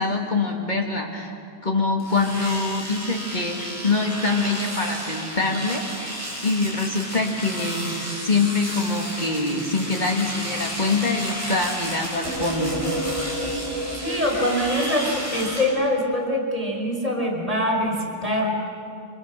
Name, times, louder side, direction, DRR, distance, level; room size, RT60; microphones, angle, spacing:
voice 1, 0.0-1.3 1.6-12.8, left 3 dB, 45° left, 1 dB, 2.2 m, -24 dB
Domestic sounds home sounds, 2.0-15.6, equal, 15° left, 6.6 m, -33 dB
sound 1, 12.2-15.8, right 1 dB, 65° left, 3.8 m, -31 dB
voice 2, 14.0-18.6, left 1 dB, 35° right, -1 dB, 5.2 m, -24 dB
26.5 x 24.5 x 6.6 m, 2.4 s
omnidirectional pair, 1.1 m